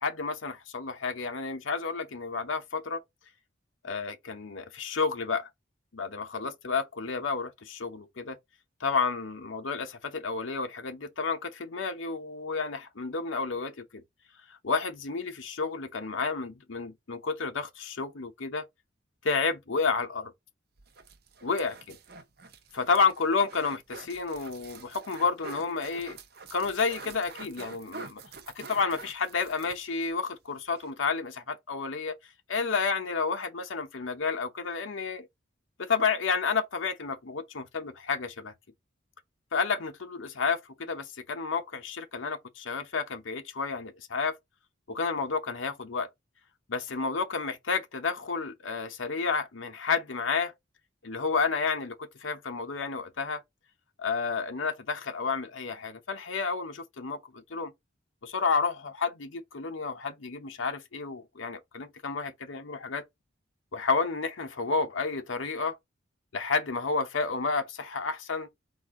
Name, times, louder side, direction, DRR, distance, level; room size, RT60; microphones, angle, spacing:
voice 1, 0.0-3.0 3.8-5.5 5.9-8.4 8.8-14.0 14.6-18.7 19.2-20.3 21.4-22.0 22.7-26.2 26.5-28.2 28.6-32.2 32.5-35.3 35.8-38.5 39.5-44.4 44.9-46.1 46.7-50.5 51.0-53.4 54.0-57.7 58.2-63.1 63.7-65.8 66.3-68.5, left 4 dB, 80° left, 0.8 m, -31 dB
sound 1, 20.8-30.1 30.4-30.5 30.8-30.9, right 4 dB, 50° right, 0.7 m, -47 dB
4.0 x 2.6 x 4.7 m
head